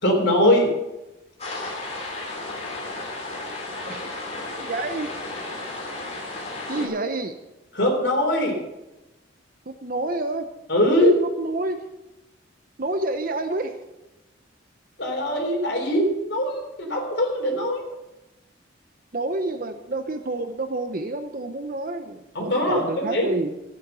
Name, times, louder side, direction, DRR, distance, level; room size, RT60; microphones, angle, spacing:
voice 1, 0.0-0.7 6.8-6.9 7.7-8.6 10.7-11.2 15.0-17.8 22.3-23.3, left 1 dB, 60° left, 1 dB, 3.7 m, -21 dB
sound 1, 1.4-6.9, left 2 dB, 35° left, 2.9 m, -33 dB
voice 2, 4.5-5.1 6.7-7.3 9.7-10.5 11.4-11.8 12.8-13.7 19.1-23.5, right 2 dB, 45° right, 8 dB, 0.7 m, -28 dB
14.0 x 8.6 x 6.8 m, 0.99 s
head